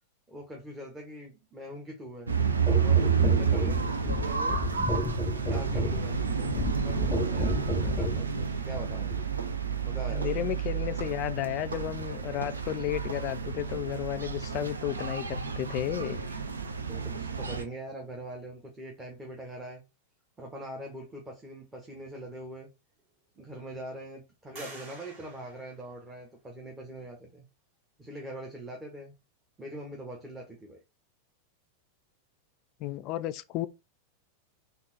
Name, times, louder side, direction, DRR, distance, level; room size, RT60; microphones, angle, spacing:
voice 1, 0.3-2.4 2.8-4.6 5.5-6.5 6.8-9.2 9.8-10.4 16.9-19.8 20.4-22.7 23.4-27.5 28.0-29.1 29.6-30.8, right 1 dB, 15° right, 0.9 m, -43 dB
sound 1, 2.3-17.6, right 6 dB, 75° right, 0.5 m, -30 dB
sound 2, 2.7-8.2 9.1-9.3, left 1 dB, 10° left, 0.7 m, -32 dB
voice 2, 10.1-16.3 32.8-33.7, left 13 dB, 40° left, 0.3 m, -33 dB
sound 3, 22.3-22.4 23.0-23.6 24.5-26.5, right 2 dB, 45° right, 2.2 m, -49 dB
3.7 x 2.5 x 3.9 m
figure-of-eight pair, 90°, 0 cm